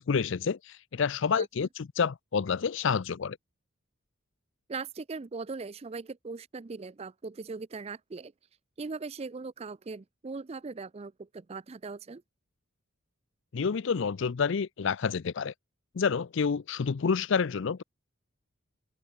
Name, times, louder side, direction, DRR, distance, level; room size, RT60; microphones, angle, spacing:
voice 1, 0.0-3.4 13.5-15.5 15.9-17.8, left 6 dB, 60° left, 0.5 m, -28 dB
voice 2, 4.7-8.3 8.8-12.2, right 4 dB, 30° right, 0.4 m, -39 dB
head